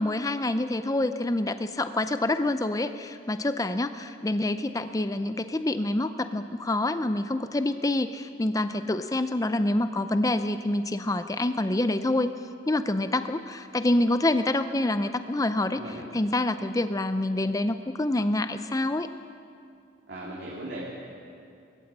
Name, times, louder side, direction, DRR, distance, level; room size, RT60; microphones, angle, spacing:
voice 1, 0.0-12.3 12.7-15.8 16.1-19.1, left 1 dB, 15° left, 10 dB, 0.5 m, -27 dB
voice 2, 20.1-20.8, right 1 dB, 55° right, -5 dB, 2.9 m, -37 dB
20.0 x 14.5 x 8.7 m, 2.4 s
head